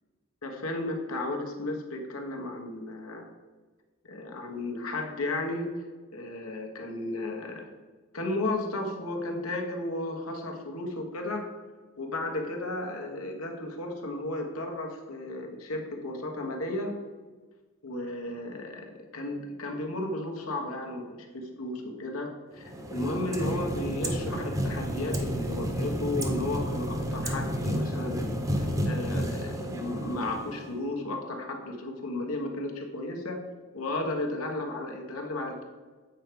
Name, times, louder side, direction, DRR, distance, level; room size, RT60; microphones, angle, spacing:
voice 1, 0.4-3.3 4.1-5.8 6.1-7.7 8.1-11.5 12.0-16.9 17.8-18.9 19.1-33.4 33.7-35.6, left 2 dB, 80° left, 2 dB, 1.3 m, -34 dB
sound 1, 22.6-30.9, equal, 15° right, 0.9 m, -31 dB
8.2 x 4.6 x 5.2 m, 1.3 s
head